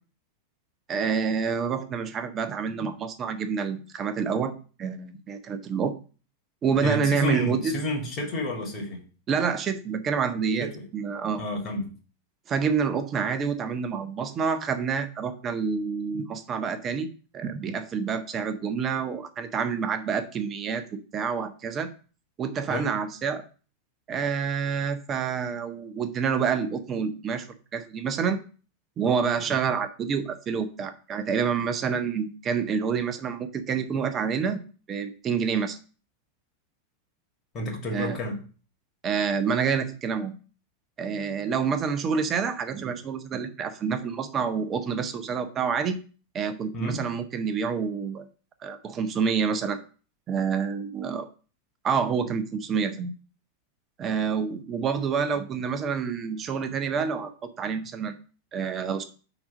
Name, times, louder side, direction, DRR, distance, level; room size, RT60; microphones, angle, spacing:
voice 1, 0.9-4.5 4.8-5.9 6.6-7.7 9.3-10.7 10.9-11.4 12.5-17.1 17.3-20.8 21.1-21.9 22.4-23.4 24.1-27.5 27.7-28.4 29.0-34.6 34.9-35.8 37.9-38.2 39.0-40.3 41.0-46.0 46.3-48.2 48.6-49.8 50.3-51.3 51.8-53.1 54.0-58.2 58.5-59.0, right 6 dB, 25° right, 9 dB, 0.9 m, -28 dB
voice 2, 6.8-9.0 10.7-10.8 11.4-11.9 22.7-22.9 37.5-38.4 46.7-47.0, left 1 dB, 30° left, 2 dB, 2.2 m, -30 dB
5.9 x 4.0 x 6.2 m, 0.38 s
figure-of-eight pair, 90°, 0 cm